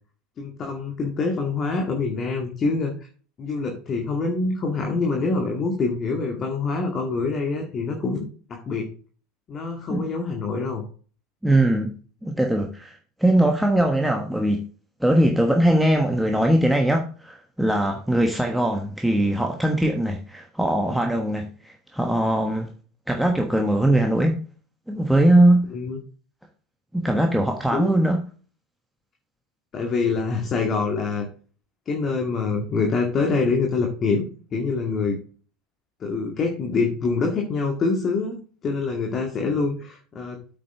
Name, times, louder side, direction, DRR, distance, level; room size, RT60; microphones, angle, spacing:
voice 1, 0.4-2.9 3.4-8.2 8.5-8.9 9.5-10.8 25.7-26.0 27.7-27.9 29.7-31.3 31.9-35.2 36.0-40.4, left 4 dB, 30° left, 2.1 m, -25 dB
voice 2, 11.4-11.9 12.2-14.6 15.0-22.7 23.1-24.4 24.9-25.6 26.9-28.2, right 1 dB, ahead, 1.3 m, -21 dB
8.5 x 8.0 x 3.6 m
figure-of-eight pair, 75°, 0 cm